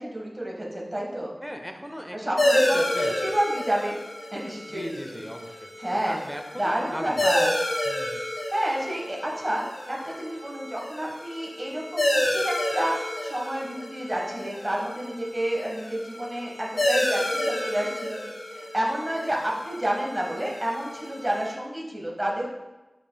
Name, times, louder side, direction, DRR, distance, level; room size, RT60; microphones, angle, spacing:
voice 1, 0.0-1.3 2.1-4.0 4.3-5.2 5.8-6.2 6.6-7.5 8.5-9.6 9.9-22.5, right 1 dB, 25° right, -2 dB, 1.4 m, -30 dB
voice 2, 1.4-3.3 4.7-5.7 6.1-6.6 6.9-7.3 7.9-8.2, equal, 5° left, 4 dB, 0.7 m, -37 dB
sound 1, 2.4-21.5, left 1 dB, 85° left, 1.4 m, -30 dB
7.9 x 5.2 x 2.3 m, 1.0 s
wide cardioid pair, 60°, 0 cm